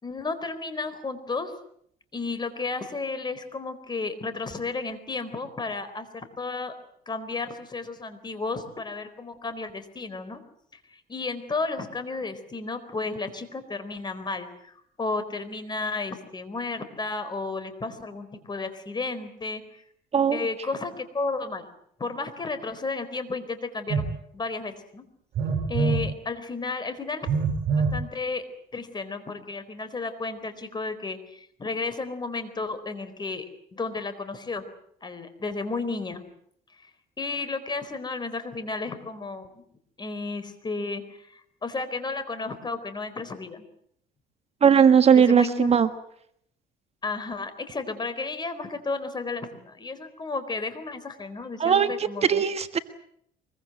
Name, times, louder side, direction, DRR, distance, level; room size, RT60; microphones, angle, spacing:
voice 1, 0.0-1.5 2.1-6.7 7.1-10.4 10.9-19.8 20.3-21.7 22.0-24.1 24.3-25.0 25.7-27.3 27.8-28.4 28.7-33.4 33.7-34.6 35.0-36.2 36.8-36.9 37.2-39.6 40.0-43.6 45.1-45.8 47.0-52.4, left 3 dB, 25° left, 11 dB, 4.2 m, -33 dB
Telephone, 23.9-24.1 25.3-26.1 27.3-28.0, right 5 dB, 60° right, 6.3 m, -24 dB
voice 2, 44.6-45.9 51.6-51.9 52.2-52.8, right 7 dB, 40° right, 9 dB, 1.5 m, -18 dB
24.0 x 23.0 x 7.9 m, 0.68 s
cardioid pair, 110°, 17 cm